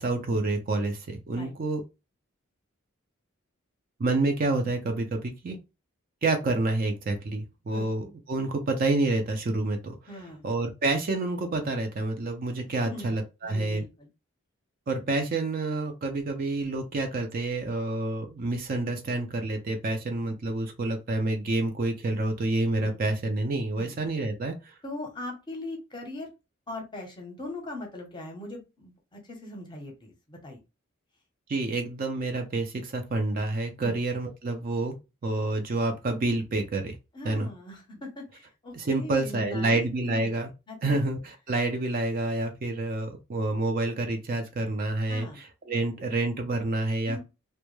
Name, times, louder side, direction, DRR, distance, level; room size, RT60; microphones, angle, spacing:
voice 1, 0.0-1.8 4.0-5.6 6.2-10.0 10.4-13.8 14.9-24.7 31.5-34.9 35.2-36.9 37.2-37.5 38.7-40.5 40.8-47.2, right 2 dB, 40° right, 0.4 m, -28 dB
voice 2, 10.1-10.5 12.8-13.1 13.4-14.1 22.8-23.0 23.8-23.9 24.8-26.3 26.7-30.6 33.8-34.0 37.1-40.3 40.7-41.0 45.1-45.4 45.7-45.9 47.1-47.2, left 2 dB, 20° left, 0.6 m, -40 dB
2.2 x 2.0 x 3.0 m
head